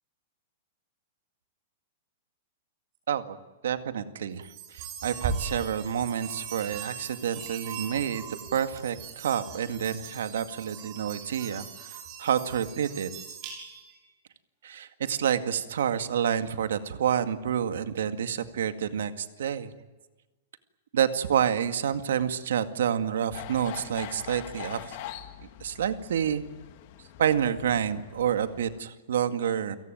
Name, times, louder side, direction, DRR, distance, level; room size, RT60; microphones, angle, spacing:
voice 1, 3.6-8.2 8.5-13.1 14.6-19.7 20.9-25.0 25.6-26.4 27.2-29.8, right 9 dB, 85° right, 9 dB, 2.1 m, -28 dB
sound 1, 4.4-13.9, right 6 dB, 30° right, 6.8 m, -39 dB
sound 2, 23.3-28.8, left 11 dB, 35° left, 1.8 m, -43 dB
29.5 x 18.0 x 9.3 m, 1.2 s
supercardioid pair, 180°, 0 cm